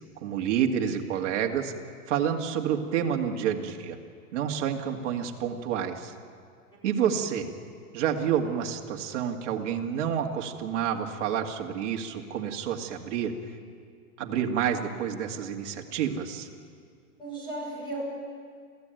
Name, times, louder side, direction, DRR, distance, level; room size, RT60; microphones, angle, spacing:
voice 1, 0.2-1.7 2.1-4.0 4.3-6.1 6.8-7.5 7.9-13.4 14.2-16.5, right 8 dB, 50° right, 2 dB, 2.4 m, -29 dB
voice 2, 6.7-7.1 17.2-18.1, right 2 dB, 10° left, -4 dB, 6.2 m, -36 dB
27.5 x 16.0 x 9.2 m, 2.2 s
supercardioid pair, 170°, 46 cm